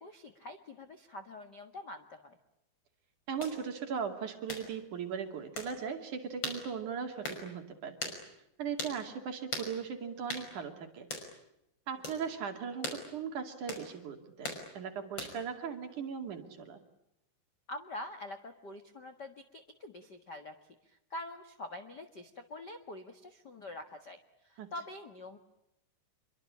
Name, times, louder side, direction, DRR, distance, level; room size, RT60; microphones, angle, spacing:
voice 1, 0.0-2.4 17.7-20.5 21.1-24.2 24.5-25.4, left 1 dB, 80° left, 8 dB, 0.9 m, -45 dB
voice 2, 3.3-8.1 8.6-11.1 11.9-16.8 24.6-24.7, right 7 dB, 50° right, 6 dB, 3.6 m, -38 dB
sound 1, 3.4-3.6 4.5-4.7 5.6-5.7 6.4-6.6 7.2-7.4 8.0-8.2 8.8-9.0 9.5-9.7 10.3-10.5 11.1-11.3 12.0-12.2 12.8-13.0 13.7-13.9 14.4-14.6 15.2-15.5, left 2 dB, 25° left, 6.1 m, -38 dB
27.0 x 23.5 x 8.6 m, 0.83 s
omnidirectional pair, 4.8 m